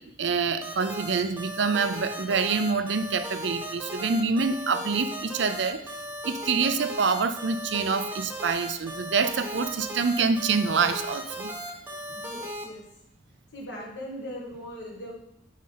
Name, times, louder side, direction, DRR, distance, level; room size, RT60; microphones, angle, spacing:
voice 1, 0.0-5.8 6.2-11.5, right 5 dB, 70° right, 11 dB, 0.5 m, -26 dB
sound 1, 0.6-12.6, equal, 10° right, 1.1 m, -36 dB
voice 2, 12.1-12.8 13.5-15.1, equal, 60° left, -3 dB, 1.7 m, -39 dB
6.4 x 5.4 x 3.9 m, 0.82 s
head